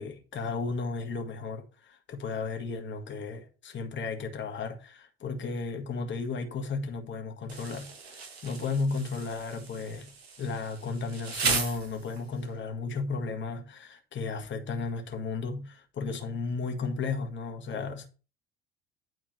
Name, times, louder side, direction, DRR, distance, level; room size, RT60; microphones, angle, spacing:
voice 1, 0.0-7.9 8.4-10.1 10.4-18.1, left 4 dB, 40° left, 1.7 m, -34 dB
Insect, 7.5-12.5, right 5 dB, 85° right, 1.4 m, -36 dB
9.5 x 4.1 x 6.4 m
hypercardioid pair, 65°, 31 cm